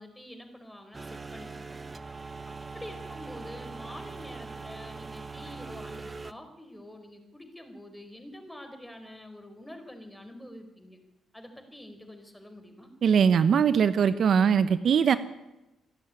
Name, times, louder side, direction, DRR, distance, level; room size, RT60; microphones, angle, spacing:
voice 1, 0.0-1.8 2.5-11.0 11.3-12.9, left 1 dB, 5° left, 6 dB, 4.7 m, -46 dB
sound 1, 0.9-6.3, right 4 dB, 25° right, 1.1 m, -41 dB
voice 2, 13.0-15.2, right 7 dB, 60° right, 13 dB, 0.9 m, -21 dB
26.5 x 11.5 x 9.8 m, 0.97 s
cardioid pair, 90°, 0 cm